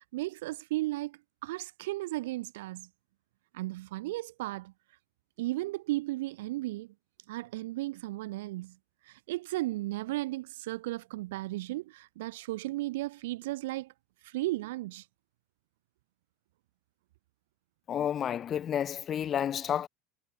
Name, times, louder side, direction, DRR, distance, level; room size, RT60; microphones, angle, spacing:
voice 1, 0.1-2.9 3.5-4.7 5.4-6.9 7.3-8.8 9.1-13.9 14.2-15.0, right 18 dB, 85° right, 2.1 m, -35 dB
voice 2, 17.9-19.9, left 9 dB, 25° left, 0.4 m, -30 dB
supercardioid pair, 165°, 0 cm